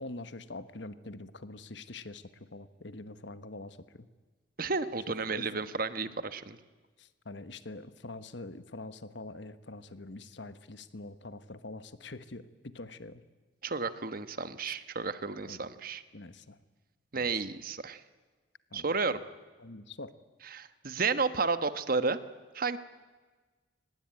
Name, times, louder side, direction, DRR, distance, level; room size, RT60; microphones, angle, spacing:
voice 1, 0.0-4.1 5.3-5.5 7.0-13.2 14.7-14.8 15.4-15.6 16.1-16.6 17.1-17.3 18.7-19.2 19.6-20.1, left 2 dB, 65° left, 13 dB, 1.2 m, -45 dB
voice 2, 4.6-6.6 13.6-16.0 17.1-18.0 18.7-19.2 20.5-22.2 22.5-22.8, right 4 dB, 45° right, 12 dB, 1.2 m, -32 dB
24.5 x 20.5 x 9.0 m, 1.3 s
head